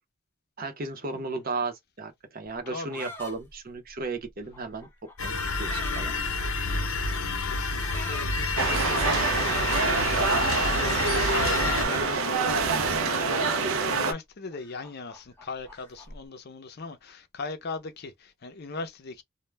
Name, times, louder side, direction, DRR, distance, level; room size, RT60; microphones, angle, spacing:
voice 1, 0.6-4.9 5.2-6.1, right 3 dB, 45° right, 0.6 m, -35 dB
sound 1, 2.5-6.9 7.6-8.3 9.5-10.2 11.4-12.9 13.2-14.1 14.5-16.2, left 1 dB, 10° left, 0.6 m, -43 dB
sound 2, 5.2-11.9, left 3 dB, 90° left, 0.7 m, -29 dB
voice 2, 6.2-6.9 7.2-9.4 9.6-19.2, left 3 dB, 50° left, 0.5 m, -39 dB
sound 3, 8.6-14.1, right 4 dB, 85° right, 0.5 m, -26 dB
2.2 x 2.1 x 3.2 m
head